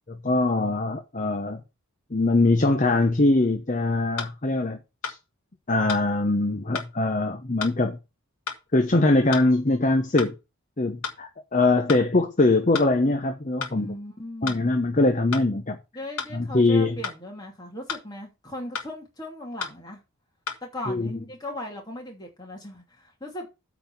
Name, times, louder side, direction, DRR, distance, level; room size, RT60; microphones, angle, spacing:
voice 1, 0.2-1.6 2.1-4.8 5.0-5.2 5.7-8.0 8.7-10.3 10.8-13.9 14.4-15.8 16.3-17.0 20.9-21.1, left 2 dB, 35° left, 0.8 m, -22 dB
sound 1, 3.4-3.5 4.2-4.3 5.0-5.2 5.9-6.1 6.7-6.9 7.6-7.8 8.5-8.6 9.3-9.5 10.2-10.3 11.0-11.2 11.9-12.1 12.7-12.9 13.6-13.8 14.5-14.6 15.3-15.5 16.2-16.3 17.0-17.2 17.9-18.1 18.7-18.9 19.6-19.8 20.5-20.6, left 6 dB, 75° left, 1.7 m, -33 dB
voice 2, 13.7-14.6 15.9-20.0 20.6-23.5, left 1 dB, 20° left, 2.6 m, -38 dB
8.8 x 4.1 x 6.9 m
head